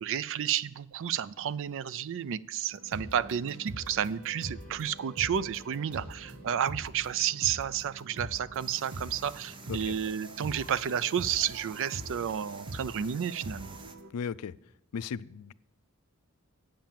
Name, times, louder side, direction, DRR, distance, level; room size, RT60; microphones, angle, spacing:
voice 1, 0.0-13.7, right 9 dB, 60° right, 19 dB, 0.4 m, -31 dB
sound 1, 2.8-14.1, right 1 dB, 75° right, 1.0 m, -44 dB
sound 2, 3.2-7.9, right 1 dB, 5° left, 1.4 m, -57 dB
sound 3, 8.6-14.0, right 3 dB, 20° right, 0.7 m, -50 dB
voice 2, 14.1-14.5 14.9-15.5, left 6 dB, 85° left, 18 dB, 0.4 m, -36 dB
8.7 x 7.5 x 7.2 m, 0.75 s
head